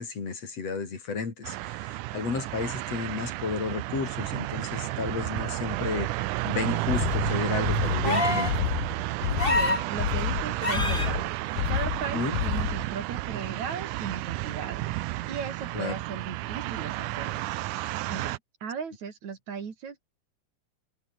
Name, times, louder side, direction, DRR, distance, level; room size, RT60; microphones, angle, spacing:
voice 1, 0.0-6.1 6.4-8.5 12.1-12.4 15.7-15.9, left 5 dB, 55° left, 4.8 m, -32 dB
sound 1, 1.4-18.4, right 17 dB, 85° right, 2.2 m, -31 dB
sound 2, 6.9-12.9, left 13 dB, 75° left, 2.5 m, -30 dB
sound 3, 8.0-8.6 9.4-9.9 10.6-11.1 12.6-12.7, left 2 dB, 15° left, 3.0 m, -26 dB
voice 2, 9.3-11.2 11.7-14.9 15.3-17.6 18.1-20.0, right 6 dB, 65° right, 4.2 m, -37 dB
omnidirectional pair, 3.6 m